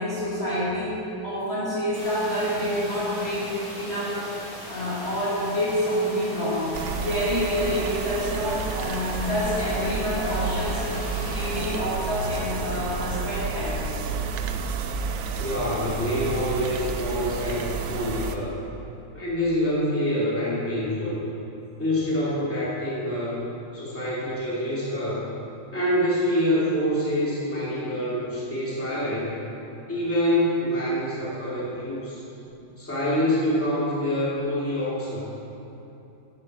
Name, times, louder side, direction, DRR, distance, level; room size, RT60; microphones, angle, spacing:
voice 1, 0.0-4.2 4.7-10.8 11.1-14.0 32.4-32.5, equal, 35° left, -10 dB, 2.8 m, -28 dB
sound 1, 1.9-11.6, equal, 70° left, 3.2 m, -38 dB
sound 2, 6.7-18.4, right 5 dB, 75° right, 1.3 m, -30 dB
voice 2, 15.4-18.5 19.1-21.2 21.8-23.4 23.7-25.3 25.7-29.4 29.9-32.2 32.8-35.3, equal, 5° left, -9 dB, 2.7 m, -26 dB
11.5 x 11.0 x 4.3 m, 2.9 s
omnidirectional pair, 1.9 m